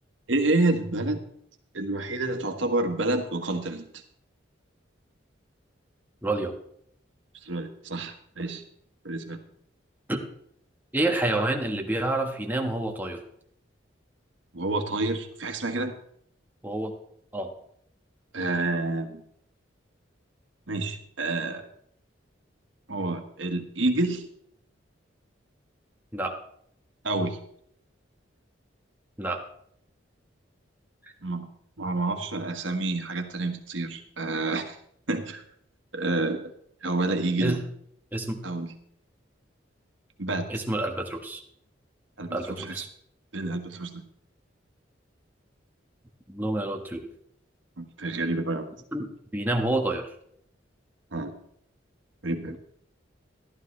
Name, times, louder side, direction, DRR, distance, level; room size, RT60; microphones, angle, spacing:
voice 1, 0.3-1.2 1.7-3.9 7.4-8.6 9.0-9.4 14.5-15.9 18.3-19.2 20.7-21.6 22.9-24.3 27.0-27.4 31.2-31.5 31.8-34.8 35.1-35.4 35.9-36.4 36.8-37.6 38.4-38.7 40.2-40.5 42.2-42.8 43.3-44.0 47.8-48.7 51.1-51.3 52.2-52.6, right 2 dB, 85° right, 5 dB, 1.5 m, -28 dB
voice 2, 6.2-6.5 10.1-10.2 10.9-13.2 16.6-17.0 17.3-17.5 26.1-26.4 29.2-29.4 37.4-37.6 38.1-38.4 40.5-41.4 42.3-42.9 46.3-47.1 48.9-50.1 52.5-52.6, right 2 dB, 10° right, 2 dB, 1.3 m, -28 dB
14.5 x 12.0 x 3.3 m, 0.68 s
head